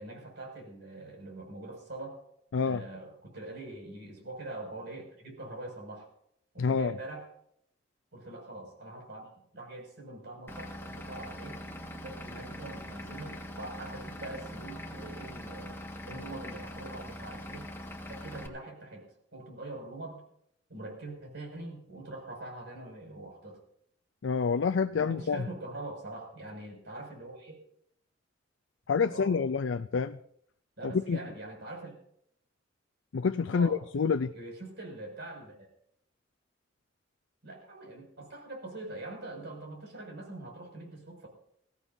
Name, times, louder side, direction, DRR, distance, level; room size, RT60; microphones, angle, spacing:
voice 1, 0.0-2.2 2.6-6.1 6.5-7.3 8.1-9.3 9.5-11.6 12.0-15.8 16.0-17.7 18.1-19.0 19.3-20.2 20.7-23.6 24.9-27.5 29.1-29.4 30.8-31.9 33.5-33.8 34.2-35.7 37.4-41.3, right 2 dB, 60° right, 6.3 m, -43 dB
voice 2, 6.6-6.9 24.2-25.4 28.9-30.2 30.8-31.2 33.1-34.3, left 5 dB, 75° left, 0.5 m, -28 dB
Vehicle / Engine, 10.5-18.5, left 1 dB, 15° left, 1.7 m, -42 dB
22.5 x 16.5 x 2.7 m
head